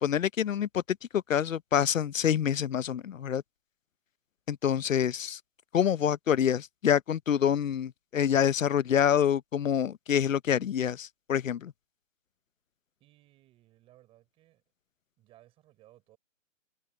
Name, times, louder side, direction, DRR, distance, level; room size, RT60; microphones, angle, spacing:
voice 1, 0.0-3.4 4.5-5.4 5.7-11.7, left 9 dB, 90° left, 0.9 m, -27 dB
voice 2, 13.0-14.6 15.2-16.2, right 15 dB, 15° right, 4.8 m, -60 dB
hypercardioid pair, 165°, 38 cm